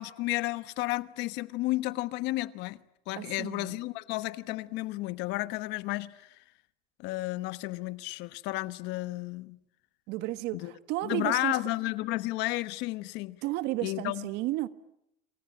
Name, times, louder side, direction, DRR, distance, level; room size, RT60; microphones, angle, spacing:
voice 1, 0.0-2.8 3.1-6.4 7.0-9.6 10.5-10.7 11.0-13.4 13.8-14.3, left 19 dB, 70° left, 1.2 m, -32 dB
voice 2, 3.2-3.8 10.1-11.6 13.4-14.7, right 16 dB, 70° right, 1.5 m, -33 dB
27.5 x 24.0 x 8.7 m
supercardioid pair, 110°, 18 cm